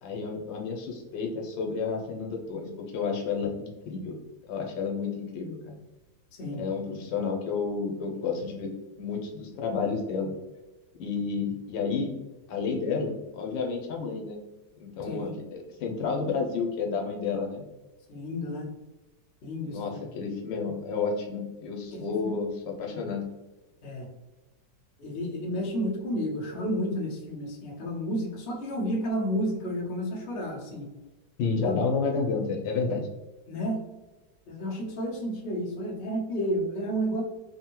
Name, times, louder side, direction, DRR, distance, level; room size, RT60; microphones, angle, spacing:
voice 1, 0.0-4.2 4.5-5.7 6.6-8.7 9.0-10.3 11.0-12.1 12.5-14.4 14.8-17.6 19.7-22.5 22.8-23.2 31.4-33.1, left 5 dB, 90° left, 1 dB, 1.4 m, -31 dB
voice 2, 6.3-6.6 15.0-15.3 18.1-18.7 19.4-20.0 21.9-22.4 22.9-23.0 23.8-24.1 25.0-30.9 31.6-31.7 33.5-33.8 34.5-37.2, equal, 50° left, -3 dB, 0.8 m, -31 dB
3.5 x 2.1 x 2.9 m, 1.1 s
omnidirectional pair, 1.9 m